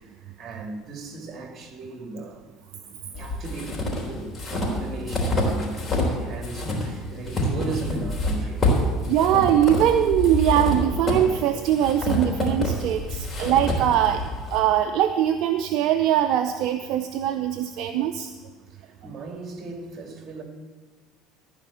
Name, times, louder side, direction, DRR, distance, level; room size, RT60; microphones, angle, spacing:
voice 1, 0.0-2.4 3.1-8.6 18.7-20.4, right 3 dB, 40° right, 2.6 m, -37 dB
sound 1, 3.1-6.2 6.4-14.6, left 1 dB, 30° left, 3.7 m, -27 dB
voice 2, 9.1-14.2 14.5-18.3, right 11 dB, 65° right, 0.5 m, -22 dB
15.0 x 5.1 x 8.6 m
supercardioid pair, 85°, 0 cm